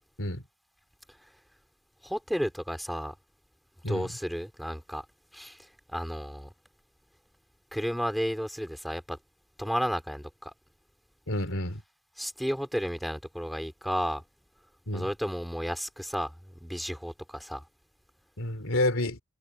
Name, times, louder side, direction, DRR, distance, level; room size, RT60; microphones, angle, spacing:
voice 1, 2.0-3.1 3.9-5.0 5.3-6.5 7.7-9.2 9.6-10.5 12.2-14.2 14.9-17.6, equal, ahead, 3.7 m, -32 dB
voice 2, 11.3-11.8 14.9-15.1 18.4-19.2, left 1 dB, 70° left, 3.5 m, -29 dB
head